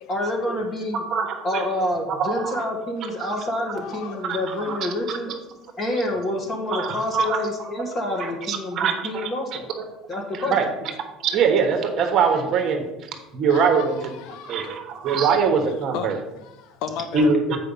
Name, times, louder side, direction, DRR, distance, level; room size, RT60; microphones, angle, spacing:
voice 1, 0.1-1.0 1.4-5.3 5.8-9.7 10.1-10.6, left 1 dB, 30° left, 1.7 m, -27 dB
voice 2, 1.1-1.6 2.2-2.6 4.3-4.4 4.7-4.8 6.7-7.4 8.5-8.9 9.2-9.3 10.5-10.7 11.2-12.8 13.3-14.0 14.5-16.2 17.1-17.6, right 5 dB, 45° right, 1.2 m, -22 dB
voice 3, 3.7-4.2 4.5-4.8 8.2-8.3 11.2-11.4 13.5-14.7 15.1-15.2 15.9-16.1 16.4-17.3, left 7 dB, 65° left, 0.6 m, -36 dB
8.1 x 4.9 x 5.4 m
cardioid pair, 145°, 0 cm